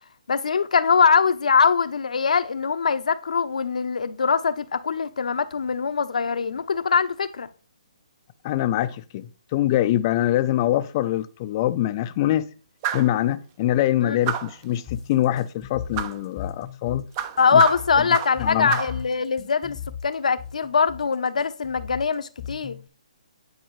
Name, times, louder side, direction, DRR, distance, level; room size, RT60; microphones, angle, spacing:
voice 1, 0.3-7.5 14.0-14.2 17.4-22.8, left 5 dB, 75° left, 0.7 m, -22 dB
voice 2, 8.4-12.5 12.9-17.0 17.5-17.6 18.4-18.8, left 13 dB, 30° left, 0.4 m, -24 dB
sound 1, 12.8-13.2 14.2-14.6 15.9-16.2 17.1-18.4 18.7-19.0, right 10 dB, 30° right, 0.6 m, -29 dB
sound 2, 14.9-22.9, left 8 dB, 10° left, 0.8 m, -37 dB
10.0 x 4.7 x 3.1 m
hypercardioid pair, 150°, 4 cm